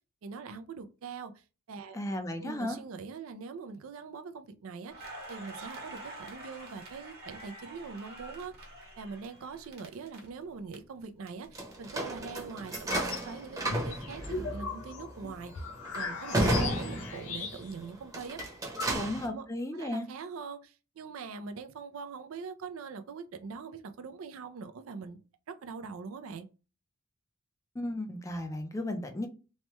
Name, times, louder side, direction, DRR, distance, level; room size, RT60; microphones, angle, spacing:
voice 1, 0.2-1.3 1.7-2.0 2.4-8.5 9.0-15.6 15.9-18.5 18.9-19.5 19.7-25.2 25.5-26.5, right 5 dB, 75° right, 0.4 m, -43 dB
voice 2, 1.9-2.8 18.9-20.1 27.8-29.3, left 1 dB, 15° left, 0.5 m, -34 dB
Crackle, 4.9-10.7 11.0-12.8, right 2 dB, 50° right, 1.0 m, -47 dB
sound 1, 11.6-17.6 18.0-19.3, right 1 dB, 15° right, 0.8 m, -33 dB
sound 2, 12.7-13.3 13.7-17.9 18.1-18.2 18.4-19.4, left 4 dB, 70° left, 0.6 m, -38 dB
3.1 x 2.2 x 2.9 m
head